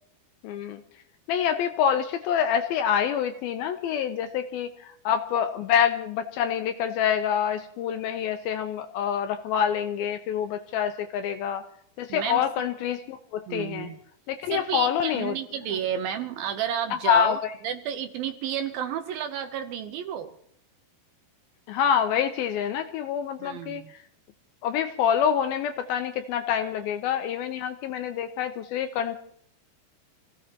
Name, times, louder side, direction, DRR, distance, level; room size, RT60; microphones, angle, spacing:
voice 1, 0.4-0.8 1.3-11.7 12.0-13.9 14.3-15.4 16.9-17.5 21.7-23.8 24.6-29.2, left 8 dB, 75° left, 8 dB, 2.3 m, -26 dB
voice 2, 12.1-12.4 13.5-14.0 14.5-17.4 17.6-20.3 23.4-23.9, right 9 dB, 75° right, 8 dB, 2.3 m, -31 dB
27.5 x 16.5 x 2.9 m, 0.66 s
omnidirectional pair, 4.8 m